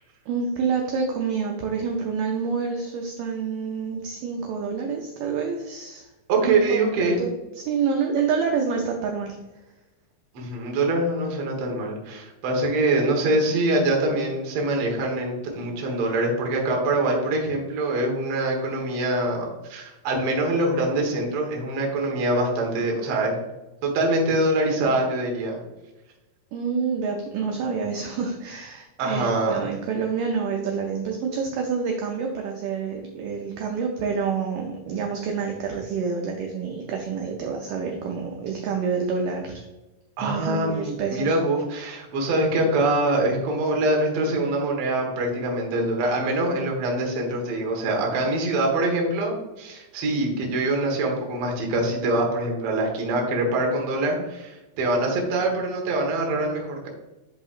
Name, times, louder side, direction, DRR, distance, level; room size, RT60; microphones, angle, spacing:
voice 1, 0.3-6.1 6.4-9.4 26.5-39.6 40.2-41.4, right 5 dB, 80° right, 1 dB, 1.9 m, -28 dB
voice 2, 6.3-7.2 10.3-23.3 23.8-25.6 29.0-29.6 40.2-56.9, right 2 dB, 60° right, 0 dB, 1.4 m, -24 dB
10.5 x 4.0 x 2.4 m, 1.1 s
omnidirectional pair, 4.4 m